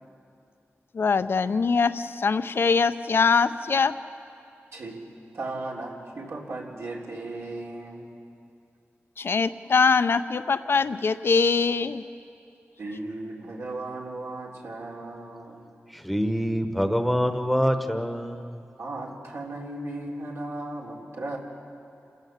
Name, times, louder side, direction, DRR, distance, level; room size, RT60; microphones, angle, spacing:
voice 1, 0.9-3.9 9.2-12.0, left 5 dB, 55° left, 12 dB, 0.6 m, -23 dB
voice 2, 5.3-8.1 12.8-15.6 18.8-21.4, right 2 dB, 75° right, -2 dB, 3.5 m, -36 dB
voice 3, 15.9-18.7, equal, ahead, 7 dB, 1.2 m, -25 dB
28.5 x 16.0 x 7.4 m, 2.5 s
wide cardioid pair, 140°, 5 cm